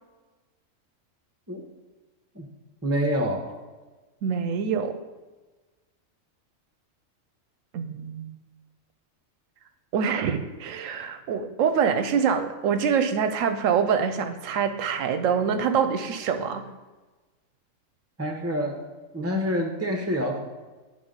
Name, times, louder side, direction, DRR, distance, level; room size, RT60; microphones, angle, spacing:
voice 1, 2.8-3.5 18.2-18.8 19.1-20.4, equal, 15° right, 2 dB, 0.8 m, -27 dB
voice 2, 4.2-5.0 7.7-8.4 9.9-16.6, right 7 dB, 75° right, 9 dB, 0.9 m, -25 dB
9.5 x 3.6 x 5.1 m, 1.2 s
omnidirectional pair, 1.4 m